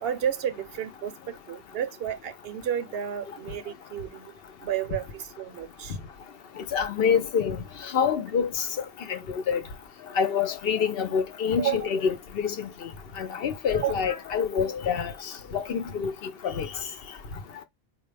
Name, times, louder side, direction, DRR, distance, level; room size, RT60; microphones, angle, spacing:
voice 1, 0.0-4.3 4.6-6.0 11.6-11.9 13.8-13.9, right 9 dB, 75° right, 0.8 m, -31 dB
voice 2, 6.7-8.7 9.1-9.6 10.2-12.7 13.2-15.1 15.5-16.7, left 7 dB, 70° left, 0.9 m, -26 dB
4.4 x 2.1 x 3.3 m
omnidirectional pair, 1.0 m